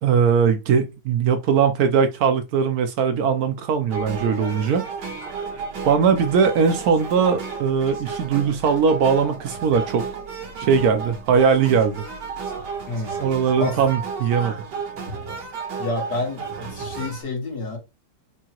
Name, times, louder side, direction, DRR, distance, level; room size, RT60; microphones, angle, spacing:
voice 1, 0.0-4.8 5.8-10.0 10.6-12.0 13.2-14.6, right 6 dB, 70° right, 1.1 m, -20 dB
sound 1, 3.9-17.2, right 5 dB, 85° right, 1.7 m, -33 dB
voice 2, 12.9-13.7 15.8-17.8, left 2 dB, 70° left, 2.2 m, -29 dB
4.8 x 2.7 x 2.9 m
omnidirectional pair, 1.8 m